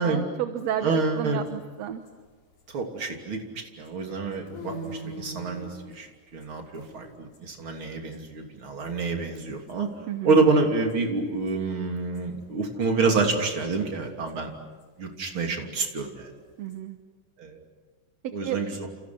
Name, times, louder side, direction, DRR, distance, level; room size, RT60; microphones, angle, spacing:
voice 1, 0.0-2.0 10.1-10.4 16.6-17.0 18.2-18.6, right 10 dB, 65° right, 8 dB, 2.1 m, -31 dB
sound 1, 0.8-3.3 3.6-9.1 9.3-9.7 10.0-10.1 10.3-12.9 13.2-16.8, right 1 dB, 80° left, 6.0 m, -44 dB
voice 2, 0.8-1.5 2.7-3.4 3.8-6.1 6.3-9.9 10.2-14.5 15.0-16.3 17.4-17.6 18.3-18.9, right 3 dB, 40° right, 2 dB, 3.8 m, -27 dB
30.0 x 29.0 x 6.2 m, 1.3 s
omnidirectional pair, 3.6 m